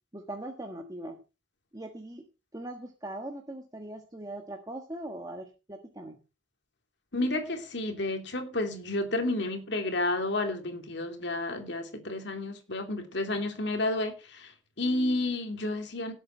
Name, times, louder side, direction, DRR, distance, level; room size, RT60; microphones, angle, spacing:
voice 1, 0.1-1.2 1.7-2.2 2.5-6.2, right 1 dB, 20° right, 1.5 m, -40 dB
voice 2, 7.1-14.5 14.8-16.1, left 2 dB, 60° left, 2.8 m, -31 dB
17.5 x 8.3 x 4.5 m
head